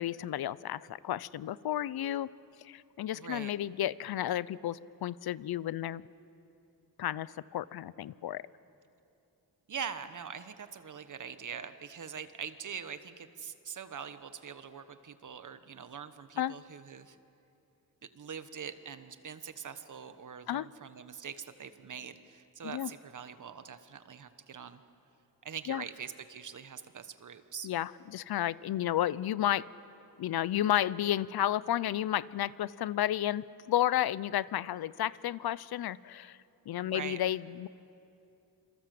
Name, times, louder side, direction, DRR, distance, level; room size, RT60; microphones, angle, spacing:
voice 1, 0.0-2.3 2.6-6.0 7.0-8.4 16.4-16.5 20.5-20.7 22.6-22.9 25.7-25.8 27.6-29.6 30.2-36.4 36.7-37.7, left 12 dB, 75° left, 19 dB, 0.7 m, -32 dB
voice 2, 3.1-3.5 9.7-17.2 18.0-24.8 25.4-27.7 36.8-37.2, right 7 dB, 50° right, 10 dB, 1.2 m, -43 dB
27.0 x 27.0 x 7.7 m, 2.7 s
wide cardioid pair, 140°, 38 cm